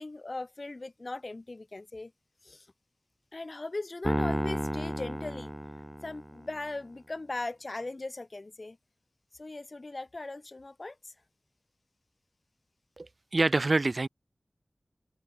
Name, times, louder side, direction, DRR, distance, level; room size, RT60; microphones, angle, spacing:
voice 1, 0.0-2.1 2.4-2.7 3.3-5.5 6.0-8.8 9.3-11.1, left 2 dB, 45° left, 5.9 m, -39 dB
Piano, 4.0-6.5, equal, 5° right, 1.5 m, -32 dB
voice 2, 13.0-14.1, right 2 dB, 50° right, 0.8 m, -26 dB
wide cardioid pair, 75°, 0 cm